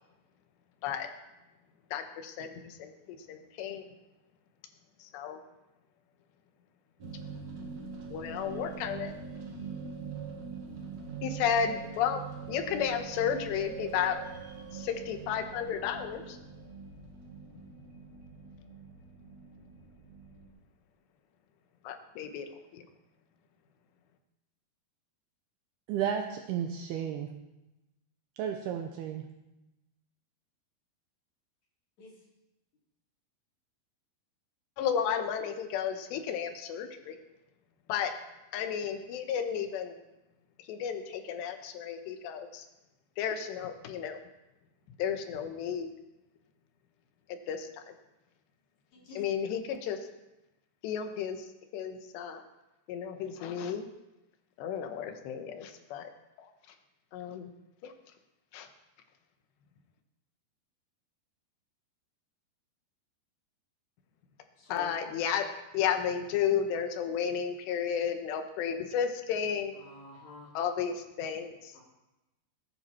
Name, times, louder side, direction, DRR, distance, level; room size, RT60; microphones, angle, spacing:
voice 1, 1.9-3.9 5.0-5.4 8.1-9.1 11.2-12.2 12.5-14.2 14.7-16.4 21.8-22.8 34.8-37.2 37.9-38.1 38.5-40.0 40.7-42.7 43.2-44.2 45.0-45.9 47.3-47.9 49.2-50.0 50.8-51.5 51.7-52.4 52.9-53.9 54.6-56.1 56.4-56.5 57.1-57.5 57.8-57.9 58.5-58.7 64.7-65.5 65.7-69.8 70.5-71.8, left 8 dB, 80° left, 7 dB, 3.2 m, -33 dB
sound 1, 7.0-20.5, right 6 dB, 50° right, 2.8 m, -43 dB
voice 2, 25.9-27.3 28.4-29.2, right 8 dB, 75° right, 4 dB, 2.6 m, -33 dB
voice 3, 64.6-64.9 69.7-70.5 71.7-71.8, left 1 dB, 45° left, -3 dB, 4.4 m, -48 dB
20.0 x 9.8 x 4.4 m, 0.99 s
omnidirectional pair, 4.9 m